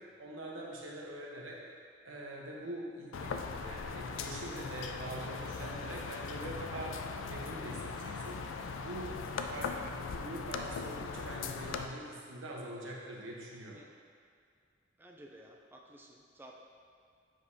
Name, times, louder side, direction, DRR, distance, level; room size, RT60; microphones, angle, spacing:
voice 1, 0.2-1.6 2.0-7.0 7.3-8.4 8.7-9.2 9.5-13.8, right 1 dB, 85° right, -2 dB, 1.0 m, -44 dB
sound 1, 3.1-11.9, left 4 dB, 80° left, 0.4 m, -39 dB
voice 2, 15.0-16.5, right 1 dB, 10° right, 0 dB, 0.4 m, -54 dB
7.4 x 5.0 x 2.7 m, 2.3 s
head